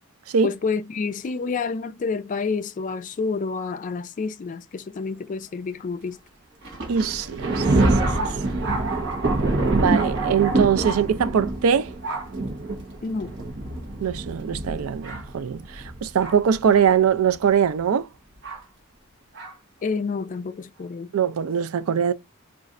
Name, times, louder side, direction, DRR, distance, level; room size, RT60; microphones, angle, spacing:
voice 1, 0.4-6.2 13.0-13.3 19.8-21.1, left 4 dB, 35° left, 0.3 m, -29 dB
Thunder, 6.6-16.6 17.3-17.4 18.4-18.6 19.3-19.5, right 2 dB, 55° right, 1.0 m, -26 dB
voice 2, 6.9-7.7 9.7-11.9 14.0-18.1 21.1-22.1, right 7 dB, 70° right, 0.4 m, -22 dB
4.0 x 2.4 x 2.4 m
head